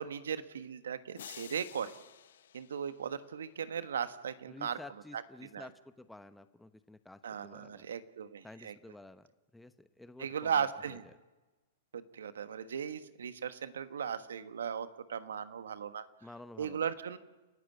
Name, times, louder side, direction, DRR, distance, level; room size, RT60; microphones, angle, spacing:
voice 1, 0.0-1.9 2.5-4.8 5.1-5.2 5.5-5.7 7.2-8.7 10.2-11.0 11.9-16.1 16.6-17.2, right 7 dB, 80° right, 11 dB, 1.4 m, -37 dB
sound 1, 1.2-3.5, left 10 dB, 70° left, 0.7 m, -52 dB
voice 2, 4.5-7.9 8.4-9.3 9.5-11.1 16.2-16.9, left 2 dB, 5° left, 11 dB, 0.9 m, -52 dB
30.0 x 12.5 x 9.3 m, 1.2 s
hypercardioid pair, 120°, 0 cm